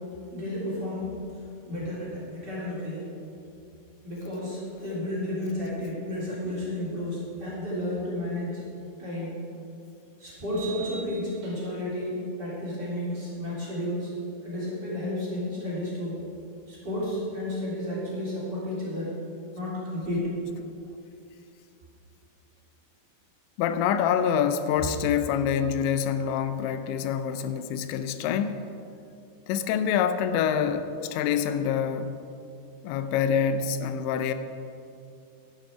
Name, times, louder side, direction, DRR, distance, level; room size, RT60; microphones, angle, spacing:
voice 1, 0.3-1.2 1.7-3.1 4.0-8.6 9.0-9.4 10.2-14.1 14.4-16.1 16.7-19.1 19.5-20.3, left 1 dB, 25° right, -9 dB, 3.9 m, -32 dB
sound 1, 8.8-8.9 10.5-11.9, right 6 dB, 50° right, 2.4 m, -44 dB
voice 2, 23.6-28.6 29.5-32.1 32.8-34.3, left 8 dB, 90° left, 10 dB, 3.0 m, -26 dB
12.0 x 11.5 x 4.8 m, 2.6 s
omnidirectional pair, 5.1 m